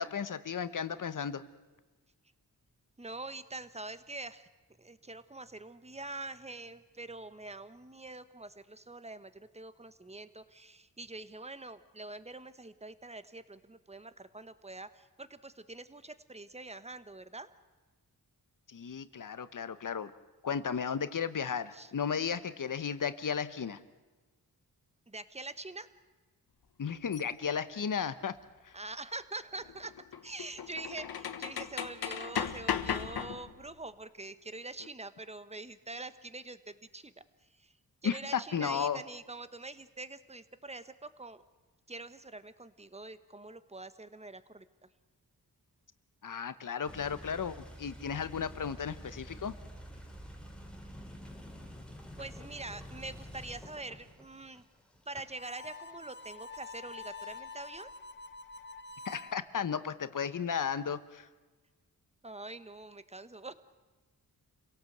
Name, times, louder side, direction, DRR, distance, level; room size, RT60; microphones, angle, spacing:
voice 1, 0.0-1.4 18.7-20.1 20.4-23.8 26.8-28.3 28.6-28.7 38.0-39.0 46.2-49.5 59.0-61.3, left 7 dB, 55° left, 13 dB, 1.1 m, -34 dB
voice 2, 3.0-4.5 4.8-17.5 21.7-21.9 25.1-25.9 28.7-29.9 30.2-37.1 37.6-37.7 38.0-41.4 41.9-44.6 52.2-54.6 55.1-57.9 62.2-63.5, right 2 dB, 15° right, 12 dB, 1.2 m, -45 dB
sound 1, 27.1-27.2 29.6-33.7, left 8 dB, 80° left, 1.2 m, -36 dB
sound 2, 46.8-57.4, equal, 5° left, 3.2 m, -49 dB
Harmonica, 55.3-59.4, left 3 dB, 30° left, 1.1 m, -47 dB
28.0 x 17.5 x 8.0 m, 1.2 s
cardioid pair, 80°, 37 cm